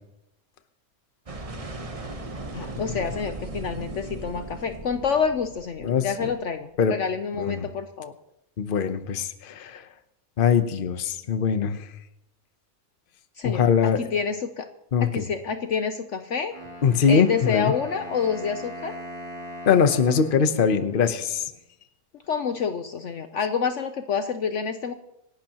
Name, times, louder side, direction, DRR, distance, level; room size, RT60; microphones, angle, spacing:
sound 1, 1.3-6.4, right 2 dB, 25° right, 1.0 m, -37 dB
voice 1, 2.5-8.1 13.4-14.7 15.0-16.5 17.1-19.0 22.3-24.9, left 6 dB, 60° left, 8 dB, 1.0 m, -28 dB
voice 2, 8.6-9.8 10.4-11.8 13.4-14.0 14.9-15.2 16.8-17.7 19.7-21.4, left 6 dB, 40° left, 10 dB, 1.0 m, -22 dB
Wind instrument woodwind instrument, 16.5-21.5, equal, 20° left, 5.6 m, -41 dB
27.0 x 12.0 x 3.0 m, 0.84 s
omnidirectional pair, 1.6 m